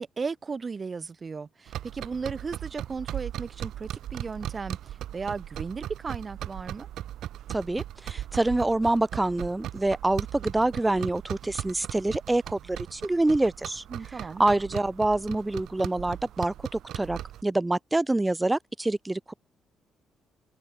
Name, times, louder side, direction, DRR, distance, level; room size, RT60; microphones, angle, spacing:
voice 1, 0.0-6.9 13.9-14.4, right 4 dB, 35° right, 0.9 m, -35 dB
sound 1, 1.7-17.4, right 12 dB, 75° right, 4.0 m, -38 dB
voice 2, 7.5-19.3, right 2 dB, 15° right, 0.4 m, -26 dB
cardioid pair, 90°, 0 cm